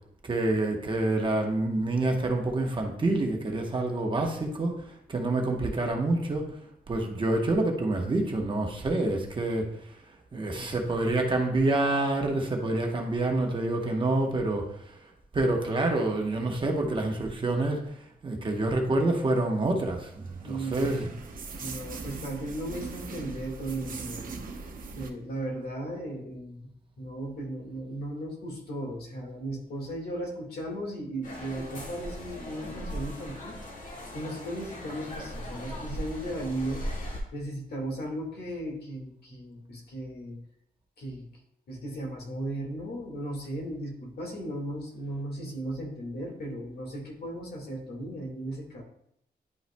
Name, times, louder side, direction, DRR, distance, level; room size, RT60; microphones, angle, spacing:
voice 1, 0.2-4.8 5.1-6.5 6.9-9.7 10.3-15.0 15.3-17.8 18.2-21.0, right 2 dB, 30° right, 2 dB, 1.0 m, -27 dB
voice 2, 10.5-11.0 20.4-21.1 21.6-24.4 24.9-36.8 37.3-40.4 41.0-41.3 41.7-48.8, right 1 dB, 80° left, 1 dB, 1.8 m, -36 dB
sound 1, 19.4-25.1, right 4 dB, 60° right, 0.8 m, -40 dB
sound 2, 31.2-37.2, equal, 50° left, 1.8 m, -38 dB
10.5 x 5.5 x 2.2 m, 0.73 s
wide cardioid pair, 165°, 16 cm